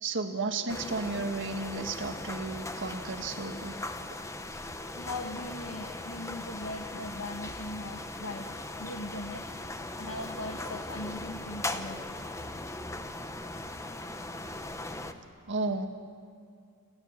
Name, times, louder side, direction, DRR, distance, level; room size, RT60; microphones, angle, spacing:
voice 1, 0.0-3.8 15.5-15.9, right 3 dB, 60° right, 6 dB, 1.7 m, -33 dB
sound 1, 0.7-15.1, left 2 dB, 15° left, 1.0 m, -39 dB
voice 2, 4.9-9.4 10.0-12.6, left 2 dB, 75° left, 3 dB, 1.5 m, -40 dB
30.0 x 12.5 x 9.7 m, 2.3 s
head